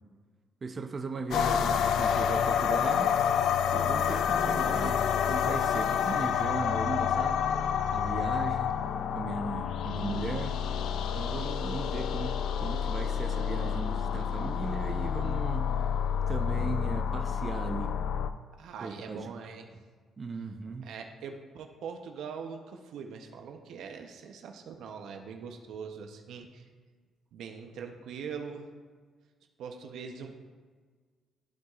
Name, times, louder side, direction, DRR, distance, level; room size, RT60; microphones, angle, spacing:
voice 1, 0.6-3.1 3.7-7.5 7.9-8.7 9.1-10.6 11.1-15.7 16.3-17.9 18.8-19.3 19.7-19.8 20.2-20.9, right 4 dB, 40° right, 4 dB, 0.6 m, -37 dB
sound 1, 1.3-18.3, left 8 dB, 75° left, 0.3 m, -29 dB
voice 2, 4.0-4.5 18.6-19.7 20.8-26.6 27.3-28.7 29.6-30.3, right 6 dB, 80° right, 4 dB, 0.7 m, -42 dB
14.0 x 4.6 x 2.4 m, 1.5 s
cardioid pair, 90°, 0 cm